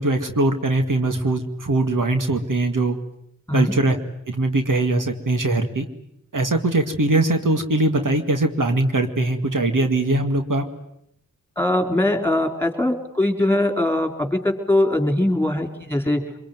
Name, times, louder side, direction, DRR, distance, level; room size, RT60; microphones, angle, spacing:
voice 1, 0.0-3.0 3.5-4.0 4.3-5.8 6.3-10.6, right 2 dB, 65° right, 6 dB, 2.2 m, -21 dB
voice 2, 11.6-16.2, left 1 dB, 5° left, 5 dB, 4.1 m, -21 dB
24.0 x 22.5 x 9.4 m, 0.76 s
wide cardioid pair, 50°, 33 cm